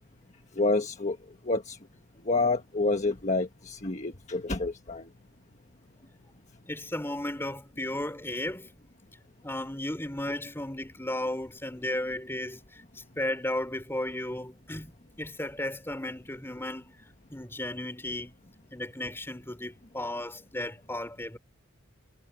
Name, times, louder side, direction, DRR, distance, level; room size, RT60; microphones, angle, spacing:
voice 1, 0.6-1.2 1.5-1.8 2.3-5.0, left 3 dB, 35° left, 1.4 m, -28 dB
voice 2, 6.6-8.7 9.4-14.9 15.2-17.0 17.3-18.3 18.7-21.4, left 1 dB, 10° left, 4.4 m, -34 dB
head